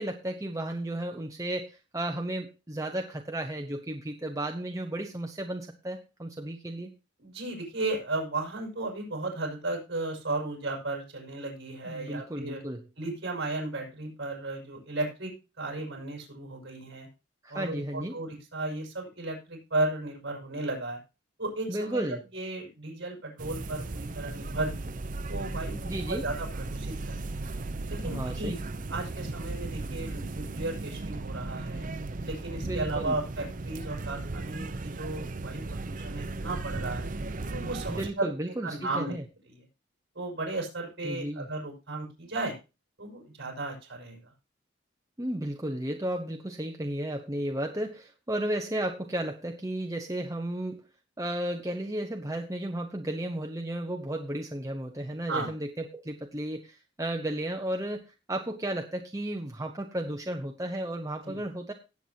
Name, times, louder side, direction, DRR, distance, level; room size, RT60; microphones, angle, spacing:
voice 1, 0.0-6.9 11.9-12.8 17.4-18.2 21.7-22.2 25.8-26.3 28.0-28.6 32.6-33.2 37.9-39.2 41.0-41.5 45.2-50.9 51.2-61.7, right 1 dB, 15° right, 3 dB, 0.9 m, -34 dB
voice 2, 7.2-12.6 13.0-17.1 17.5-21.0 21.4-22.0 22.3-24.9 25.3-27.2 27.9-28.6 28.9-31.9 32.2-37.1 37.5-38.3 38.6-39.1 39.5-39.6 40.1-42.6 43.0-44.3 55.3-55.5 61.2-61.4, right 2 dB, 60° right, 1 dB, 6.3 m, -35 dB
sound 1, 23.4-38.1, right 2 dB, 40° right, 0.7 m, -36 dB
18.0 x 8.0 x 2.8 m, 0.30 s
head